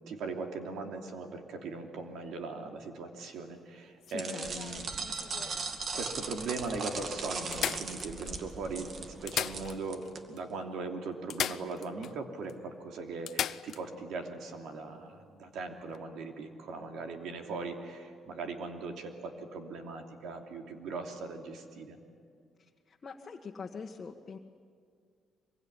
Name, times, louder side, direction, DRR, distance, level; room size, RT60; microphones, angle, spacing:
voice 1, 0.0-4.9 5.9-22.0, right 3 dB, 80° right, 4 dB, 2.9 m, -39 dB
sound 1, 4.0-5.6 6.3-6.4 6.7-6.8 7.5-8.5 9.1-10.1 10.4-10.5 11.3-12.2 12.5-12.6 13.3-13.8 15.8-16.0, left 10 dB, 70° left, 0.7 m, -37 dB
voice 2, 4.1-4.4 22.6-24.4, left 5 dB, 40° left, 0 dB, 1.6 m, -44 dB
sound 2, 4.2-10.2, right 4 dB, 50° right, 2.3 m, -38 dB
Rain, 4.4-9.8, right 2 dB, 20° right, 1.3 m, -50 dB
24.5 x 23.0 x 9.9 m, 2.2 s
cardioid pair, 90°, 0 cm